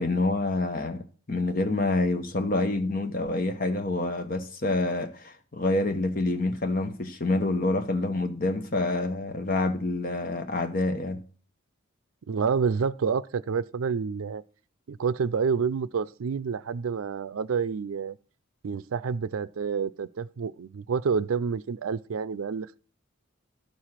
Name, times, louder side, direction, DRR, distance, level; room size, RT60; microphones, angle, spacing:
voice 1, 0.0-11.2, left 2 dB, 40° left, 0.9 m, -27 dB
voice 2, 12.3-14.4 14.9-18.2 18.6-22.8, right 6 dB, 80° right, 0.4 m, -28 dB
12.0 x 4.9 x 5.7 m
head